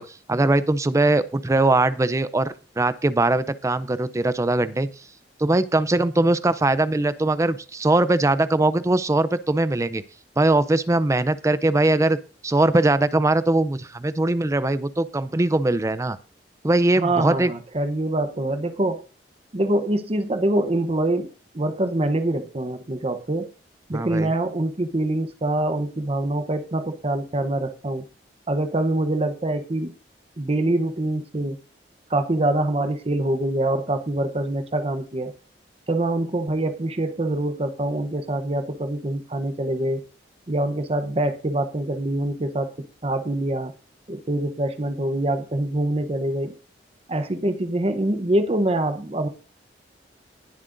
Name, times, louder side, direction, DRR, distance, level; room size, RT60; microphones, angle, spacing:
voice 1, 0.0-5.1 5.4-10.0 10.4-12.2 12.4-16.2 16.6-17.5 23.9-24.3, right 2 dB, 20° right, 15 dB, 0.5 m, -21 dB
voice 2, 17.0-19.0 19.5-21.3 21.5-23.5 23.9-28.0 28.5-29.9 30.4-31.6 32.1-35.3 35.9-40.0 40.5-42.7 43.0-43.7 44.1-46.5 47.1-49.3, right 1 dB, 35° right, 8 dB, 0.9 m, -24 dB
19.0 x 7.4 x 2.6 m, 0.38 s
head